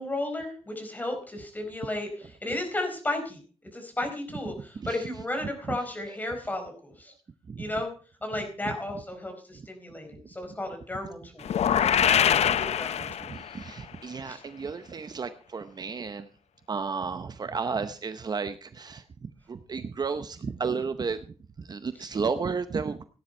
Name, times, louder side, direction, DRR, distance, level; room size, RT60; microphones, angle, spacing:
voice 1, 0.0-3.4 3.7-7.1 7.6-7.9 8.2-11.6 11.8-13.3 14.2-14.4 22.0-22.1, left 1 dB, 15° left, 4 dB, 4.4 m, -34 dB
sound 1, 11.4-13.6, left 9 dB, 85° left, 0.6 m, -24 dB
voice 2, 13.1-16.3 16.7-21.2 21.6-23.0, right 5 dB, 40° right, 10 dB, 0.8 m, -33 dB
17.0 x 10.5 x 4.4 m, 0.37 s
wide cardioid pair, 165°, 11 cm